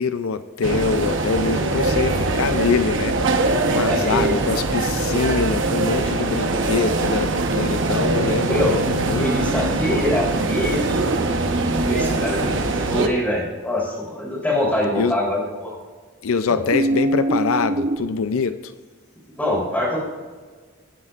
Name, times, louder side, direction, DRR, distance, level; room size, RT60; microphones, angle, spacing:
voice 1, 0.0-3.2 3.7-9.3 9.9-10.0 15.0-15.1 16.2-18.7, left 5 dB, 85° left, 11 dB, 0.5 m, -24 dB
sound 1, 0.6-13.1, right 2 dB, 65° right, 1.0 m, -22 dB
voice 2, 3.7-4.5 8.5-8.8 9.2-11.0 11.7-15.7 19.3-20.0, left 1 dB, 10° left, -4 dB, 3.6 m, -24 dB
sound 2, 10.4-13.0 16.7-18.0, right 2 dB, 40° right, 0.7 m, -26 dB
18.5 x 9.7 x 2.5 m, 1.4 s
head